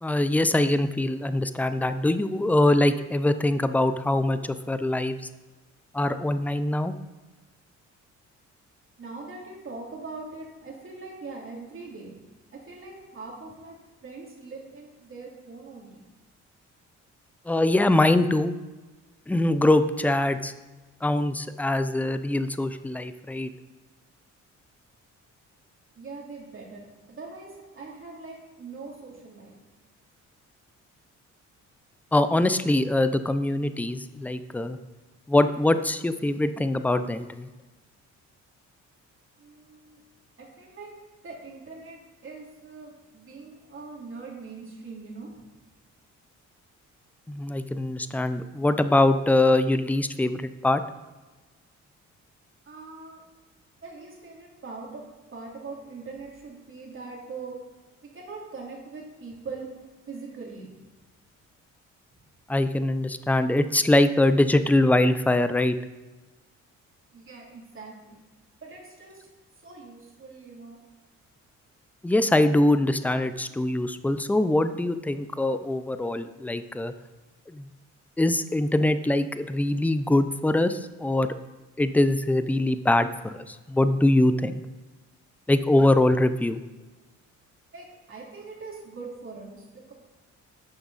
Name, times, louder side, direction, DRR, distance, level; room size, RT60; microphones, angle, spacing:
voice 1, 0.0-4.4 4.7-5.2 5.9-6.9 17.5-18.5 19.3-20.5 21.0-23.5 32.1-34.8 35.3-37.5 47.3-50.8 62.5-65.7 72.0-76.9 77.5-77.7 78.2-81.3 81.8-84.6 85.5-86.6, left 1 dB, 5° left, 11 dB, 0.5 m, -23 dB
voice 2, 9.0-12.2 12.5-13.8 14.0-16.0 25.9-27.5 27.7-29.6 39.4-40.0 40.4-40.9 41.2-45.3 52.7-53.2 53.8-55.0 55.3-57.6 58.0-59.7 60.1-60.7 67.1-68.2 68.6-69.3 69.6-70.8 87.7-89.9, right 4 dB, 45° right, -2 dB, 3.1 m, -42 dB
11.0 x 6.8 x 4.1 m, 1.2 s
cardioid pair, 90°, 30 cm